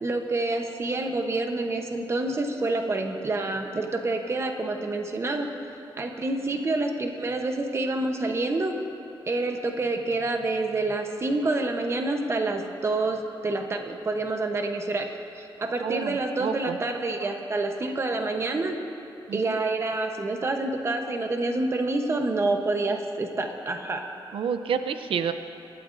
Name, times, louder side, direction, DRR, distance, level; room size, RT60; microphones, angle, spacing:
voice 1, 0.0-5.5 6.0-8.8 9.3-15.1 15.4-18.8 19.3-24.1, right 2 dB, 30° right, 4 dB, 0.9 m, -27 dB
voice 2, 15.8-16.8 19.3-19.6 24.3-25.3, right 7 dB, 90° right, 9 dB, 0.5 m, -29 dB
24.5 x 12.0 x 2.6 m, 2.9 s
wide cardioid pair, 180°, 9 cm